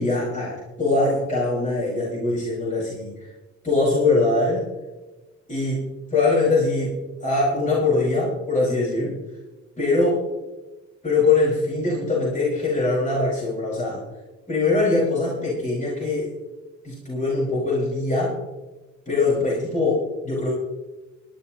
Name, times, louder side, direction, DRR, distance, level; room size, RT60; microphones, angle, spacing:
voice 1, 0.0-3.1 3.6-4.6 5.5-9.2 9.8-10.2 11.0-14.0 14.5-16.3 16.8-18.4 19.1-20.5, left 3 dB, 25° left, -6 dB, 5.0 m, -22 dB
19.5 x 12.0 x 2.9 m, 1.1 s
cardioid pair, 90°, 30 cm